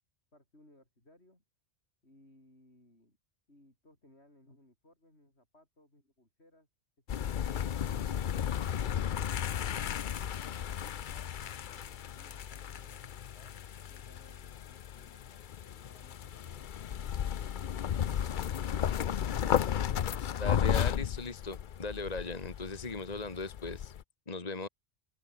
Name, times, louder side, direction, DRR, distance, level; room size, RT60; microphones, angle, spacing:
voice 1, 0.3-1.4 2.0-3.2 3.5-6.7 11.1-16.7, left 1 dB, 80° left, 8.4 m, -62 dB
sound 1, 7.1-24.0, left 9 dB, 55° left, 0.7 m, -34 dB
voice 2, 20.4-23.9 24.3-24.7, left 3 dB, 40° left, 1.8 m, -38 dB
open air
omnidirectional pair, 1.1 m